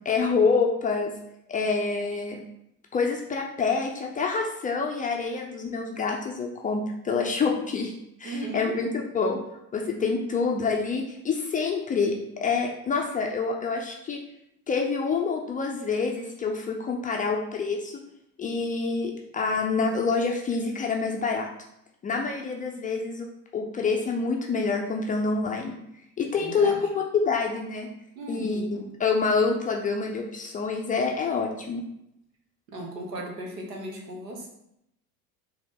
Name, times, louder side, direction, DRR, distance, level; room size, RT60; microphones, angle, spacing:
voice 1, 0.1-1.1 1.5-2.4 2.9-7.9 8.2-9.4 9.7-14.2 14.7-18.0 18.4-21.5 22.0-23.3 23.5-25.7 26.2-27.9 28.3-31.8, left 4 dB, 20° left, 1 dB, 0.4 m, -27 dB
voice 2, 8.2-8.7 10.0-10.3 26.4-26.8 28.1-28.9 32.7-34.5, right 1 dB, 85° right, 0 dB, 1.0 m, -36 dB
4.7 x 2.1 x 3.6 m, 0.79 s
hypercardioid pair, 65°, 48 cm